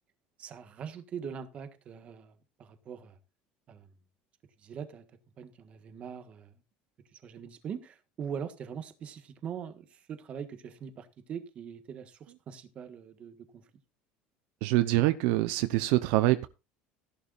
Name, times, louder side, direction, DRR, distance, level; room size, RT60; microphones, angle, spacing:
voice 1, 0.4-3.2 3.7-3.9 4.6-5.0 5.4-6.5 7.1-13.6, right 7 dB, 35° right, 1.5 m, -42 dB
voice 2, 14.6-16.5, right 17 dB, 70° right, 0.7 m, -25 dB
15.5 x 11.5 x 2.5 m
cardioid pair, 155°, 4 cm